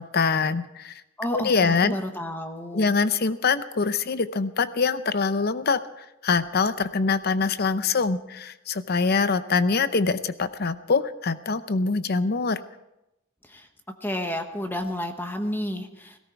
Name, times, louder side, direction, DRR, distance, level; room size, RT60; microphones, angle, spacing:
voice 1, 0.0-1.0 1.3-2.0 2.7-12.6, left 4 dB, 50° left, 13 dB, 0.7 m, -24 dB
voice 2, 1.2-2.9 13.4-13.7 14.0-16.2, left 1 dB, 10° left, 6 dB, 1.2 m, -31 dB
17.5 x 17.0 x 4.7 m, 0.91 s
head